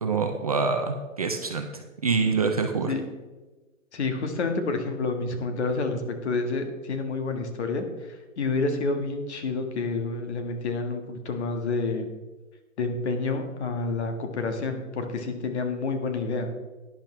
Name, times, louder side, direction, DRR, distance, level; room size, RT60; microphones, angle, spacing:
voice 1, 0.0-2.9, right 4 dB, 30° right, 4 dB, 0.5 m, -26 dB
voice 2, 3.9-12.1 12.8-16.5, left 3 dB, 55° left, 5 dB, 1.6 m, -29 dB
12.0 x 10.0 x 3.3 m, 1.2 s
hypercardioid pair, 165°, 41 cm